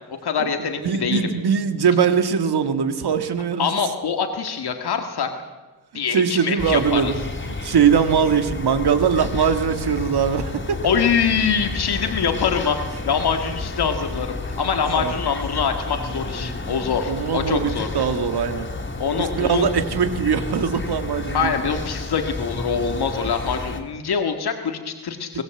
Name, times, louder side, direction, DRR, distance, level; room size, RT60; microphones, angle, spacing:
voice 1, 0.2-1.3 3.6-5.3 5.9-7.1 10.8-17.9 19.0-19.7 21.3-25.4, left 6 dB, 90° left, 5 dB, 1.9 m, -24 dB
voice 2, 0.8-3.7 5.9-7.1 7.6-10.8 15.0-15.1 17.1-18.7 19.2-21.5, right 7 dB, 90° right, 9 dB, 1.9 m, -21 dB
sound 1, 6.6-23.8, left 3 dB, 30° left, 2.7 m, -31 dB
23.5 x 18.5 x 7.8 m, 1.2 s
wide cardioid pair, 165°, 38 cm